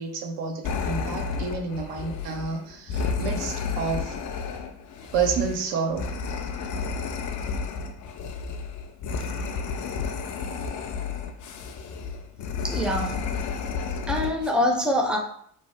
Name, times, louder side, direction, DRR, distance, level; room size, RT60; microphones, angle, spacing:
voice 1, 0.0-4.2 5.1-6.1, right 5 dB, 75° right, 3 dB, 0.6 m, -29 dB
sound 1, 0.6-14.5, left 5 dB, 45° left, 0.5 m, -31 dB
voice 2, 12.6-13.2 14.1-15.2, left 1 dB, ahead, 1 dB, 0.6 m, -24 dB
2.8 x 2.0 x 3.2 m, 0.64 s
hypercardioid pair, 60°, 43 cm